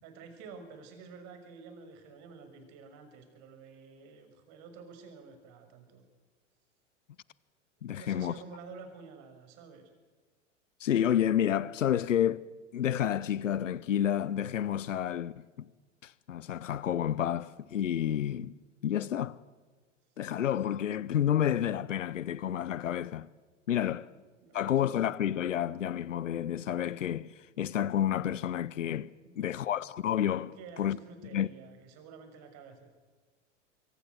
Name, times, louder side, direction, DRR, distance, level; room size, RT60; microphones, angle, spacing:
voice 1, 0.0-6.0 7.9-9.9 23.7-24.0 24.4-24.7 29.2-29.7 30.6-32.9, right 5 dB, 45° right, 6.2 m, -50 dB
voice 2, 7.8-8.3 10.8-12.4 12.7-15.7 16.0-18.5 18.8-19.4 20.2-23.3 23.7-24.1 24.5-31.0 31.3-31.5, left 10 dB, 80° left, 0.8 m, -30 dB
25.5 x 24.5 x 8.2 m
figure-of-eight pair, 90°, 37 cm